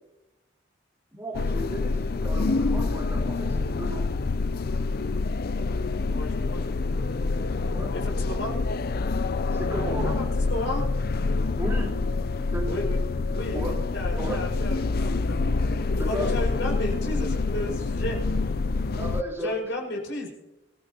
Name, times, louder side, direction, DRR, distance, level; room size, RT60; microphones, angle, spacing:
voice 1, 1.1-4.1 7.4-7.9 9.4-10.2 11.6-11.9 12.5-12.7 13.5-13.7 14.2-14.4 16.0-16.3 19.0-19.6 19.9-20.0, equal, 15° right, -2 dB, 4.1 m, -34 dB
sound 1, 1.3-19.2, left 3 dB, 50° left, 0.5 m, -26 dB
voice 2, 6.0-6.9 7.9-8.6 9.7-10.9 12.7-13.0 13.3-15.4 15.9-18.2 19.4-20.3, left 1 dB, 70° left, -2 dB, 6.1 m, -33 dB
25.0 x 14.5 x 2.9 m, 0.96 s
head